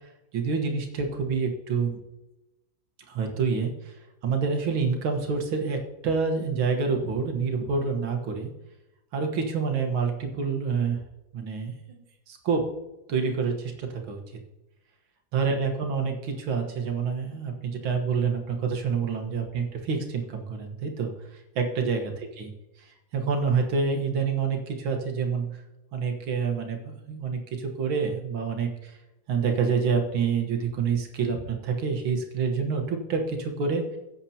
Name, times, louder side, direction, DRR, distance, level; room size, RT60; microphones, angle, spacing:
voice 1, 0.3-2.0 3.1-4.0 4.2-8.5 9.1-11.0 11.3-12.0 12.3-12.7 13.1-14.2 15.3-22.5 22.9-25.6 25.9-29.0 29.3-33.9, right 5 dB, 85° right, 3 dB, 2.2 m, -27 dB
16.0 x 7.9 x 2.9 m, 0.98 s
omnidirectional pair, 2.2 m